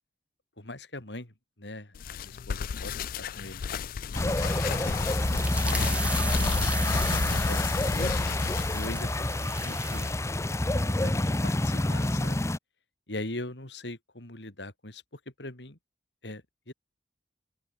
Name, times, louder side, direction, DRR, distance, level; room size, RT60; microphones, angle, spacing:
voice 1, 0.6-3.6 4.1-6.6 7.0-8.2 8.7-10.1 10.7-12.4 13.1-15.8 16.2-16.7, left 2 dB, 85° left, 4.1 m, -42 dB
sound 1, 1.9-9.0, left 7 dB, 55° left, 0.4 m, -34 dB
sound 2, 4.1-12.6, left 1 dB, 15° left, 0.7 m, -28 dB
sound 3, 4.8-10.2, right 2 dB, 10° right, 3.6 m, -37 dB
open air
head